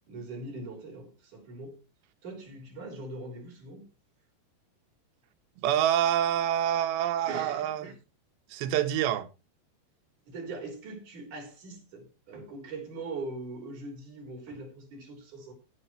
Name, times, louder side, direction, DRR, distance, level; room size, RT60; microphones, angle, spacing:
voice 1, 0.1-1.8 2.2-3.9 7.3-7.9 10.3-15.5, right 2 dB, 45° right, 5.0 m, -41 dB
voice 2, 5.6-7.9 8.5-9.3, right 11 dB, 80° right, 3.3 m, -26 dB
16.0 x 9.3 x 3.1 m
omnidirectional pair, 5.0 m